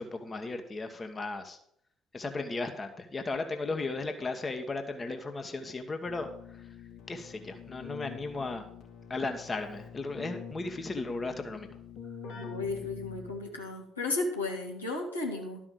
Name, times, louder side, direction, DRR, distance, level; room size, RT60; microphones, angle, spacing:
voice 1, 0.0-1.6 2.1-6.6 7.1-8.7 9.1-11.7, left 3 dB, 30° left, 6 dB, 1.3 m, -36 dB
Keyboard (musical), 6.0-13.6, left 6 dB, 60° left, 2.4 m, -46 dB
voice 2, 12.2-15.6, left 2 dB, 85° left, -2 dB, 1.8 m, -34 dB
12.0 x 5.6 x 6.7 m, 0.69 s
figure-of-eight pair, 50°, 0 cm